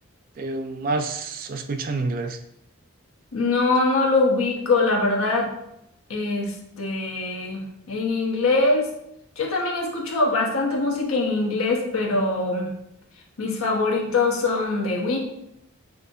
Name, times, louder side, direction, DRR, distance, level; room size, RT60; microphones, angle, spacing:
voice 1, 0.4-2.4, right 3 dB, 40° right, 7 dB, 0.3 m, -28 dB
voice 2, 3.3-5.5 6.1-8.9 9.4-12.7 13.4-15.2, left 3 dB, 85° left, 0 dB, 0.9 m, -23 dB
6.1 x 2.6 x 2.6 m, 0.78 s
head